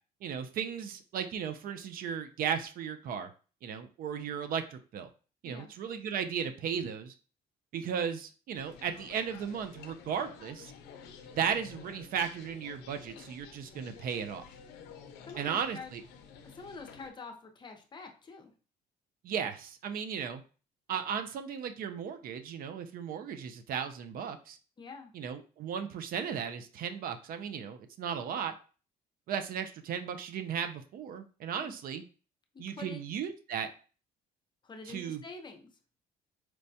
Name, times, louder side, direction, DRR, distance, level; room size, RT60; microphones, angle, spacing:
voice 1, 0.2-3.3 3.6-5.1 5.4-7.1 7.7-10.7 11.4-14.4 15.4-16.0 19.2-20.4 20.9-24.6 25.1-28.5 29.3-32.0 32.6-33.7 34.9-35.2, right 7 dB, 60° right, 8 dB, 0.5 m, -35 dB
sound 1, 8.5-17.1, left 6 dB, 90° left, 0.5 m, -51 dB
voice 2, 15.3-15.9 16.4-18.5 24.8-25.1 31.6-31.8 32.5-33.0 34.6-35.7, left 4 dB, 25° left, 4 dB, 0.6 m, -46 dB
4.4 x 2.1 x 2.6 m, 0.36 s
cardioid pair, 110°, 17 cm